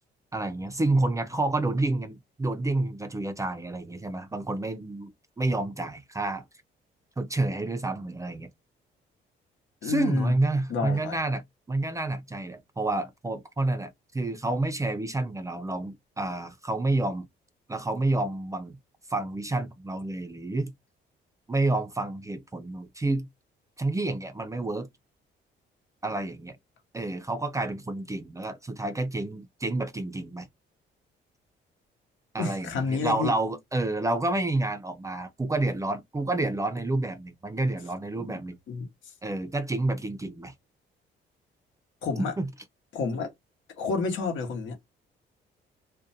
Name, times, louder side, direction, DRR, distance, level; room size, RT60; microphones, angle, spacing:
voice 1, 0.3-5.1 5.4-6.4 7.2-8.5 9.8-17.3 17.7-18.8 19.1-20.7 21.5-23.3 23.8-24.9 26.0-26.6 26.9-30.5 32.3-38.6 39.2-40.5 42.2-42.5, right 2 dB, 15° right, 0.4 m, -29 dB
voice 2, 9.8-10.3 10.7-11.2 32.4-33.3 38.2-38.4 38.7-38.9 42.0-42.3 42.9-43.3 43.8-44.8, left 4 dB, 75° left, 0.9 m, -30 dB
2.4 x 2.2 x 2.6 m
cardioid pair, 90°, 20 cm